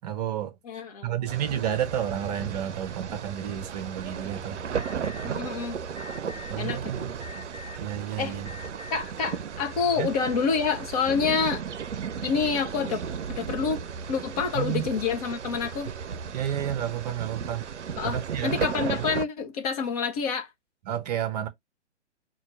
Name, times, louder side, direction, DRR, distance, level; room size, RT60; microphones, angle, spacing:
voice 1, 0.0-0.5 1.0-4.6 6.5-7.1 7.8-8.5 10.0-10.1 14.5-14.9 16.3-17.6 18.0-18.6 19.0-19.1 20.9-21.5, right 10 dB, 35° right, 0.7 m, -31 dB
voice 2, 0.6-1.3 5.2-5.8 6.6-7.1 8.2-8.4 8.9-11.6 12.2-13.0 13.4-13.8 14.1-15.9 18.0-20.5, left 6 dB, 35° left, 0.8 m, -28 dB
sound 1, 1.3-19.2, right 7 dB, 75° right, 0.5 m, -35 dB
Alarm, 4.7-5.3 5.9-6.5 7.2-7.8 8.4-9.0, left 5 dB, 5° right, 0.4 m, -43 dB
5.7 x 2.3 x 3.3 m
figure-of-eight pair, 120°, 35 cm